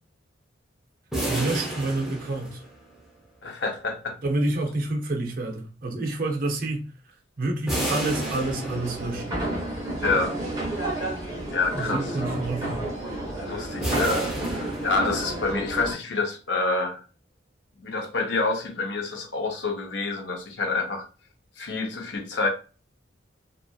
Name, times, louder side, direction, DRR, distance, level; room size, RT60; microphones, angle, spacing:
sound 1, 1.1-3.0 7.7-9.3 13.8-15.5, right 1 dB, ahead, 0.6 m, -31 dB
voice 1, 1.3-2.6 4.2-6.9 7.4-9.4 11.7-12.8, right 2 dB, 50° right, 0.6 m, -28 dB
voice 2, 3.4-4.2 10.0-10.3 11.5-12.1 13.4-17.0 17.8-21.1 21.6-22.5, left 3 dB, 65° left, 0.7 m, -27 dB
sound 2, 8.0-15.9, right 1 dB, 20° right, 1.0 m, -31 dB
2.7 x 2.4 x 2.3 m
head